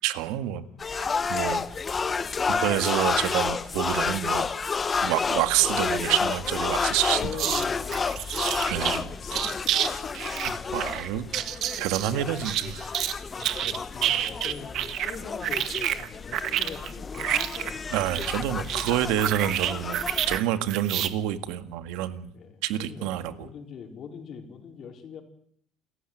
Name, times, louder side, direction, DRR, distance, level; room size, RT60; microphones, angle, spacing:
voice 1, 0.0-0.6 1.0-1.6 2.5-4.5 5.0-7.6 8.3-8.4 8.7-9.1 10.7-11.3 11.8-12.8 17.9-20.0 20.3-22.3 22.6-23.5, right 12 dB, 85° right, 11 dB, 2.0 m, -28 dB
sound 1, 0.8-20.4, left 5 dB, 20° left, 0.9 m, -30 dB
voice 2, 7.1-8.2 8.7-10.3 11.8-12.0 13.4-17.9 22.3-25.2, left 6 dB, 40° left, 4 dB, 4.6 m, -42 dB
sound 2, 7.4-7.6 7.9-9.0 9.3-9.9 10.1-13.1 13.4-15.2 15.4-20.4 20.7-21.1, right 11 dB, 50° right, 1.8 m, -29 dB
29.0 x 15.0 x 9.4 m, 0.67 s
cardioid pair, 160°, 0 cm